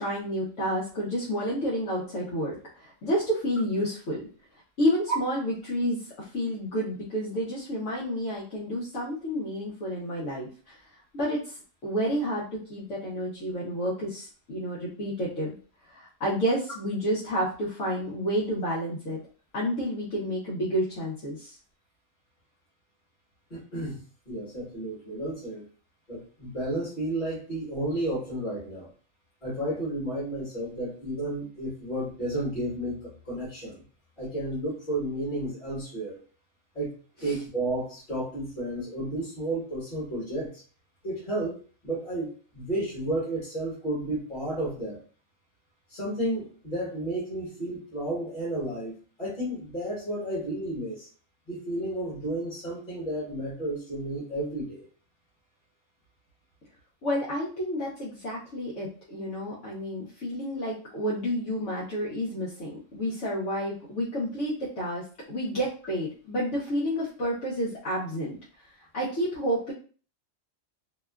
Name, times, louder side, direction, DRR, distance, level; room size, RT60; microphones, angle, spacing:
voice 1, 0.0-4.3 4.8-10.8 11.1-11.6 11.8-15.5 15.9-19.2 19.5-21.6 37.2-37.3 57.0-68.4 68.9-69.7, equal, 70° left, -7 dB, 1.0 m, -30 dB
voice 2, 23.5-25.6 26.1-28.9 29.4-33.8 34.2-36.2 36.7-36.9 37.2-40.6 41.0-41.6 41.8-42.3 42.5-45.0 45.9-51.1 51.5-54.8, right 1 dB, 40° left, -8 dB, 1.4 m, -32 dB
2.9 x 2.2 x 2.2 m, 0.40 s
omnidirectional pair, 1.3 m